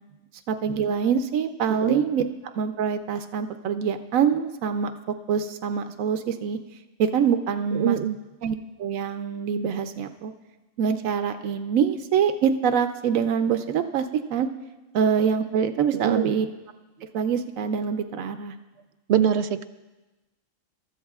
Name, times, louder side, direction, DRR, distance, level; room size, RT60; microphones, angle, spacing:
voice 1, 0.5-2.2 2.6-6.6 7.0-8.0 8.4-10.3 10.8-14.0 14.3-14.5 14.9-16.5 17.1-18.5, right 7 dB, 85° right, 8 dB, 1.1 m, -25 dB
voice 2, 7.7-8.2 15.9-16.3 19.1-19.6, right 9 dB, 65° right, 10 dB, 0.8 m, -23 dB
27.0 x 13.5 x 2.4 m, 1.1 s
omnidirectional pair, 1.4 m